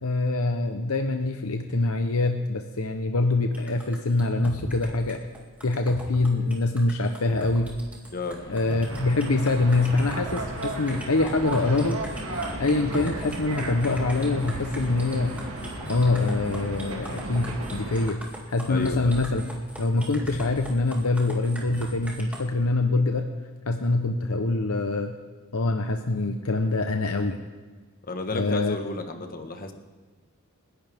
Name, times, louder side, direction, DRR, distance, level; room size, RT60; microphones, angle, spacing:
voice 1, 0.0-5.2 5.6-7.7 8.5-12.0 12.6-15.3 15.9-18.2 18.5-19.4 19.8-23.3 23.7-25.1 25.5-27.4 28.3-28.8, left 2 dB, 70° left, 5 dB, 0.9 m, -24 dB
sound 1, 3.5-22.4, right 1 dB, 5° right, 2.4 m, -40 dB
sound 2, 8.2-17.5, equal, 20° left, 3.7 m, -43 dB
sound 3, 8.9-18.1, right 2 dB, 65° right, 2.1 m, -36 dB
voice 2, 18.7-19.1 28.1-29.7, left 2 dB, 40° left, 5 dB, 1.4 m, -32 dB
29.0 x 11.0 x 3.6 m, 1.4 s
head